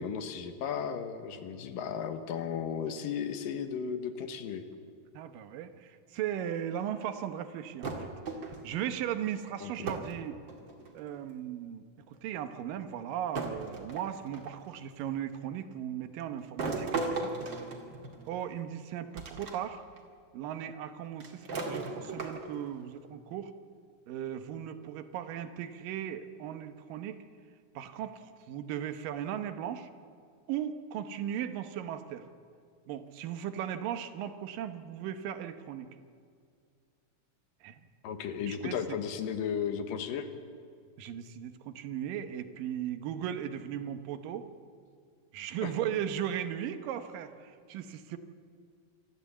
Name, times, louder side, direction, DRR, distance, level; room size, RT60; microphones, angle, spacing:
voice 1, 0.0-4.6 9.6-9.7 38.0-40.3 45.6-45.7, left 7 dB, 90° left, 8 dB, 3.0 m, -35 dB
voice 2, 5.1-8.1 8.6-10.4 10.9-17.3 18.3-19.8 20.3-23.5 24.1-27.2 27.8-29.9 30.5-32.3 32.9-35.9 37.6-37.8 38.5-38.8 41.0-44.5 45.3-48.2, right 10 dB, 85° right, 9 dB, 2.7 m, -37 dB
sound 1, 7.8-8.8 9.9-10.2 10.5-11.1 12.1-12.2 13.3-14.7 16.6-18.4 19.1-19.6 20.0-20.1 21.2-22.7, right 3 dB, 40° right, 2.4 m, -36 dB
25.0 x 13.5 x 8.3 m, 2.2 s
omnidirectional pair, 3.9 m